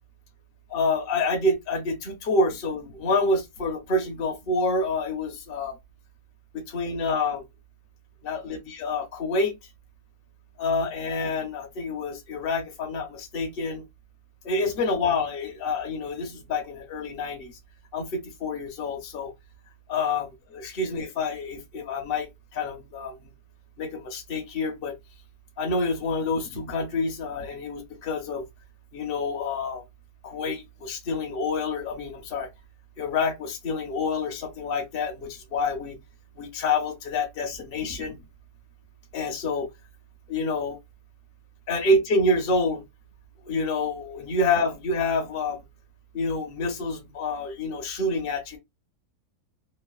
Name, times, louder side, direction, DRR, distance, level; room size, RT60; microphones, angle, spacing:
voice 1, 0.7-5.7 6.5-7.4 8.2-9.5 10.6-13.8 14.4-17.5 17.9-19.3 19.9-23.2 23.8-25.0 25.6-28.4 28.9-29.8 30.2-32.5 33.0-36.0 36.4-38.2 39.1-39.7 40.3-40.8 41.7-42.8 43.4-45.6 46.1-48.6, left 2 dB, 50° left, 0.8 m, -27 dB
3.1 x 2.2 x 2.2 m
omnidirectional pair, 1.6 m